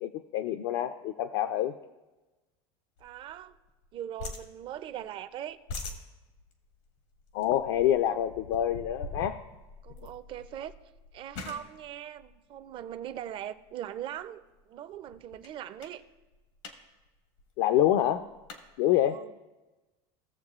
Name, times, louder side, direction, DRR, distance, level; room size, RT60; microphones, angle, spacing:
voice 1, 0.0-1.7 7.3-9.4 17.6-18.2 18.8-19.2, left 11 dB, 60° left, 8 dB, 0.5 m, -26 dB
sound 1, 3.0-3.9 4.2-5.1 5.5-13.3 13.9-14.2 14.6-14.7 14.9-15.5 15.8-16.0 16.3-16.8 17.1-17.2 17.4-18.6, left 3 dB, 85° left, 1.5 m, -43 dB
voice 2, 3.0-3.6 3.9-5.6 8.0-8.2 9.8-10.7 11.1-16.0 19.1-19.3, right 11 dB, 35° right, 12 dB, 0.5 m, -40 dB
17.0 x 7.2 x 2.4 m, 1.1 s
supercardioid pair, 145°, 14 cm